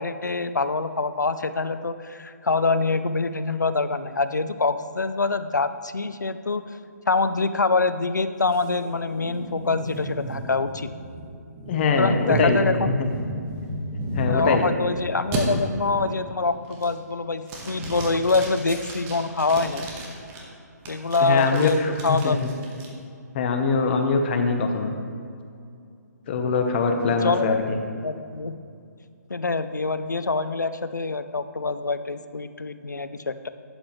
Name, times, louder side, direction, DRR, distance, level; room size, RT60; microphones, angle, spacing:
voice 1, 0.0-6.6 7.1-10.9 12.0-12.9 14.3-19.9 20.9-22.4 27.1-27.7 28.0-28.5 29.3-33.5, left 3 dB, 90° left, 12 dB, 0.5 m, -25 dB
sound 1, 8.5-14.8 15.3-15.4 15.9-16.3 16.7-17.1 17.5-20.4 20.9-22.9, right 1 dB, 20° right, 1.4 m, -33 dB
voice 2, 11.7-12.6 13.0-13.1 14.2-14.7 21.2-22.4 23.3-24.9 26.3-27.8, left 4 dB, 40° left, 5 dB, 1.0 m, -23 dB
11.5 x 7.9 x 3.2 m, 2.4 s
figure-of-eight pair, 140°, 9 cm